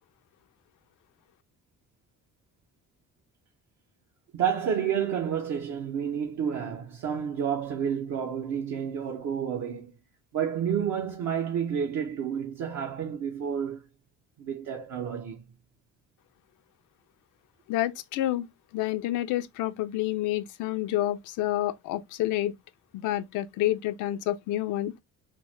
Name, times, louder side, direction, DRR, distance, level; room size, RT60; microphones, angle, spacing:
voice 1, 4.3-9.9 10.3-13.9 14.4-15.4, right 8 dB, 70° right, 0.7 m, -30 dB
voice 2, 17.7-18.5 18.7-22.5 23.0-24.9, left 14 dB, 85° left, 0.5 m, -28 dB
3.6 x 2.1 x 3.0 m
cardioid pair, 90°, 30 cm